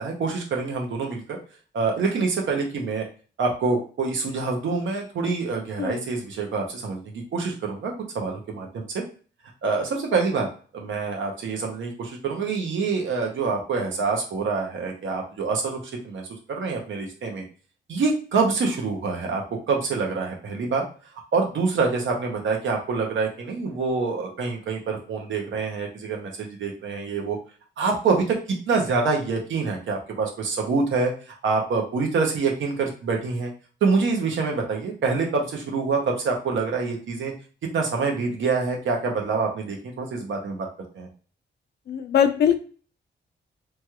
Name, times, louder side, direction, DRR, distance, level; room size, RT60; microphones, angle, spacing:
voice 1, 0.0-1.4 1.7-3.0 3.4-9.0 9.6-10.5 10.7-17.4 17.9-19.4 19.7-20.8 21.3-27.4 27.8-33.5 33.8-37.3 37.7-40.7 40.9-41.1, right 4 dB, 85° right, 1 dB, 0.8 m, -26 dB
voice 2, 41.9-42.6, left 8 dB, 60° left, 8 dB, 0.4 m, -21 dB
3.1 x 2.3 x 2.9 m, 0.39 s
wide cardioid pair, 150°, 19 cm